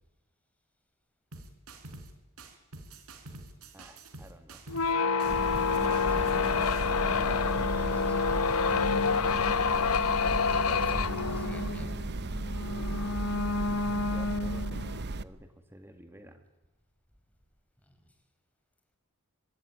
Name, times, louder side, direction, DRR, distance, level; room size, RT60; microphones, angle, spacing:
sound 1, 1.3-2.1 2.4-4.9 5.2-6.9, right 2 dB, 75° right, 4.1 m, -47 dB
voice 1, 3.7-5.0 6.8-8.2 14.1-16.5, right 1 dB, 10° right, 7 dB, 1.7 m, -52 dB
sound 2, 4.7-15.0, left 5 dB, 75° left, 0.8 m, -28 dB
sound 3, 5.2-15.2, right 2 dB, 50° right, 0.9 m, -35 dB
voice 2, 6.1-6.5 7.7-8.7 10.2-11.9 17.8-17.9, equal, 5° left, 5 dB, 4.8 m, -47 dB
24.5 x 20.5 x 9.8 m, 1.1 s
head